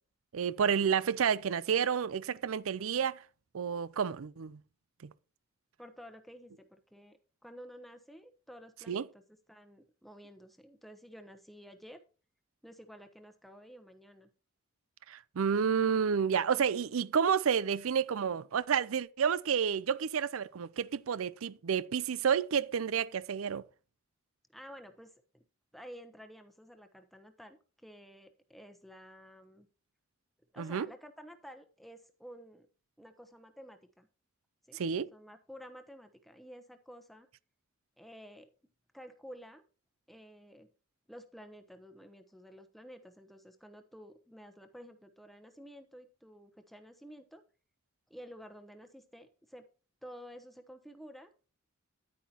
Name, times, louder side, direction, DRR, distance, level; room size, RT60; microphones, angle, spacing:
voice 1, 0.3-3.2 3.5-4.6 5.0-5.1 8.9-9.1 15.1-23.6 30.6-30.9 34.7-35.1, right 7 dB, 85° right, 0.5 m, -30 dB
voice 2, 5.8-9.2 9.5-12.0 12.6-14.3 24.5-25.4 25.7-29.7 30.5-32.7 33.0-34.1 34.7-34.8 35.1-37.3 38.0-38.5 38.9-39.6 40.1-40.7 41.1-47.4 48.1-49.7 50.0-51.3, equal, ahead, 1.0 m, -52 dB
10.5 x 9.4 x 2.9 m
head